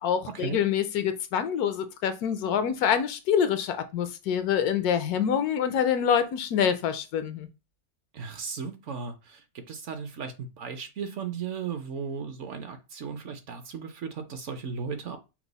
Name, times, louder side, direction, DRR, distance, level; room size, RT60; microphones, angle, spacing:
voice 1, 0.0-7.5, left 8 dB, 80° left, 1.1 m, -26 dB
voice 2, 8.1-15.2, right 6 dB, 60° right, 0.9 m, -36 dB
6.0 x 2.0 x 3.9 m
omnidirectional pair, 1.6 m